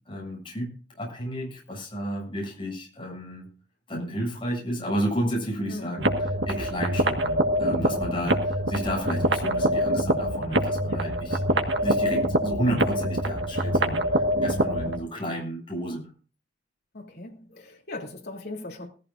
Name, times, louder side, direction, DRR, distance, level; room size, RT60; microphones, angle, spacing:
voice 1, 0.0-3.5 3.9-16.1, equal, 30° left, 7.7 m, -32 dB
sound 1, 6.0-15.0, right 1 dB, 75° right, 1.7 m, -25 dB
voice 2, 10.9-11.4 16.9-18.9, left 2 dB, 60° left, 3.1 m, -39 dB
19.5 x 15.0 x 2.6 m
head